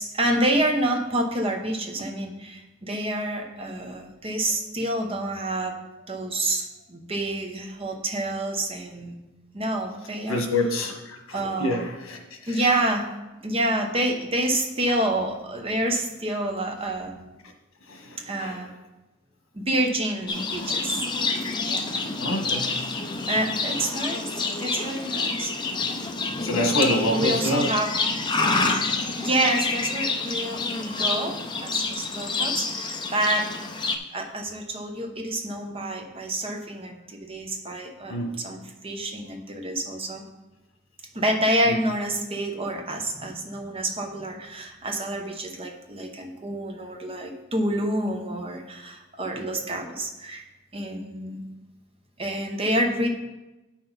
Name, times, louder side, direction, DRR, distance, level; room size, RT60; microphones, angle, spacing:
voice 1, 0.0-5.8 6.1-9.1 9.5-10.4 11.3-11.8 12.5-13.0 13.4-17.2 18.3-18.7 19.5-21.0 21.7-21.8 22.8-24.3 24.6-25.5 26.0-26.1 26.9-27.9 29.2-33.5 34.1-40.3 41.1-50.4 50.7-51.4 52.2-53.1, right 1 dB, 25° right, 3 dB, 0.8 m, -28 dB
voice 2, 10.3-12.6 17.9-18.6 22.2-22.8 26.4-27.7 38.1-38.4 41.7-41.8, left 1 dB, 85° left, 3 dB, 1.4 m, -27 dB
Livestock farm animals working animals, 20.3-34.0, left 3 dB, 20° left, 0.5 m, -28 dB
8.3 x 5.9 x 4.0 m, 1.1 s
head